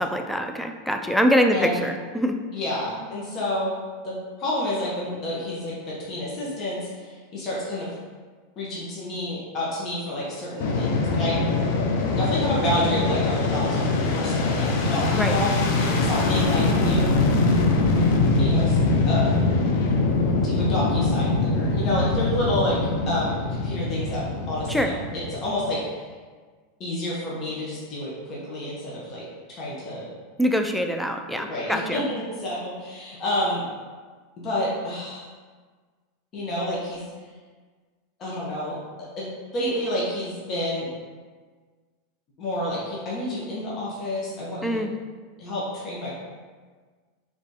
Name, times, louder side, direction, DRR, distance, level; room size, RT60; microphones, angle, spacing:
voice 1, 0.0-2.4 15.1-15.4 24.7-24.9 30.4-32.0 44.6-44.9, equal, ahead, 5 dB, 0.3 m, -24 dB
voice 2, 2.5-3.8 4.0-7.9 8.6-11.4 12.2-13.8 14.1-15.5 15.8-17.1 18.4-18.8 19.1-19.4 20.4-22.8 23.1-26.0 26.8-30.1 31.3-33.6 34.4-35.2 36.3-37.0 38.2-38.8 39.2-40.9 42.4-44.8 45.4-46.1, left 1 dB, 40° left, -6 dB, 1.0 m, -29 dB
Fixed-wing aircraft airplane, 10.6-25.8, left 3 dB, 70° left, 0.5 m, -23 dB
3.4 x 3.2 x 2.7 m, 1.5 s
hypercardioid pair, 110°, 0 cm